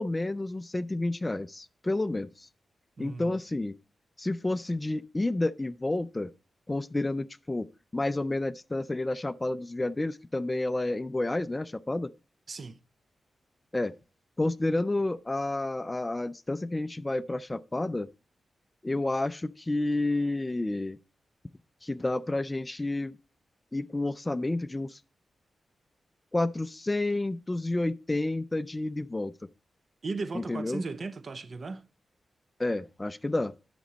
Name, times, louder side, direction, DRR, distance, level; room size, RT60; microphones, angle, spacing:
voice 1, 0.0-2.5 3.0-3.7 4.2-6.3 6.7-7.7 7.9-12.1 13.7-13.9 14.4-18.1 18.8-21.0 21.8-23.2 23.7-25.0 26.3-29.3 30.3-30.8 32.6-33.5, left 2 dB, 20° left, 0.4 m, -30 dB
voice 2, 3.0-3.3 12.5-12.8 30.0-31.8, right 3 dB, 50° right, 0.6 m, -36 dB
10.0 x 6.1 x 4.0 m
wide cardioid pair, 100°, 0 cm